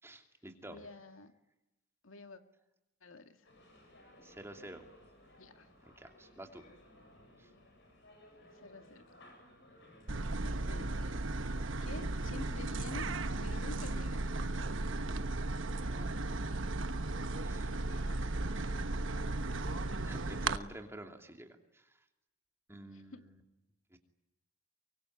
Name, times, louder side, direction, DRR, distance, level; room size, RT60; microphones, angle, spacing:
voice 1, 0.0-0.9 4.2-4.9 5.8-6.7 7.4-7.5 15.8-16.5 17.4-17.7 18.5-19.3 20.0-22.0 22.7-23.4 23.9-24.0, right 1 dB, 10° right, 4 dB, 2.8 m, -50 dB
voice 2, 0.7-1.3 2.0-2.4 3.0-3.5 5.4-5.7 8.6-9.1 10.4-11.1 11.8-13.1 13.4-14.2 22.9-23.2, left 3 dB, 75° left, 7 dB, 2.1 m, -49 dB
sound 1, 3.4-20.6, left 1 dB, 60° left, 7.8 m, -59 dB
sound 2, 10.1-20.6, right 2 dB, 65° right, 1.2 m, -35 dB
24.0 x 24.0 x 9.5 m, 0.95 s
head